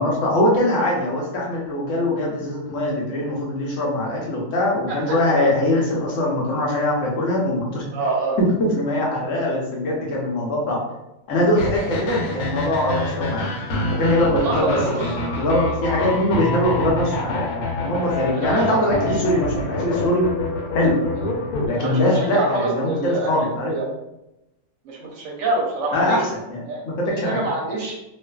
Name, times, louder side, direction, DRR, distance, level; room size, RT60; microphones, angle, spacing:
voice 1, 0.0-7.8 8.4-10.8 11.3-13.4 13.9-20.2 20.7-21.0 21.6-23.7 25.9-27.4, left 1 dB, 65° left, -3 dB, 0.9 m, -22 dB
voice 2, 4.9-5.5 7.9-8.4 14.3-15.2 18.3-18.7 21.1-21.3 21.7-23.3 23.7-23.9 24.8-26.2 26.6-26.8 27.1-28.0, right 3 dB, 65° right, -2 dB, 0.9 m, -26 dB
sound 1, 11.6-21.7, left 2 dB, 90° left, 1.1 m, -27 dB
2.5 x 2.3 x 2.2 m, 0.92 s
omnidirectional pair, 1.5 m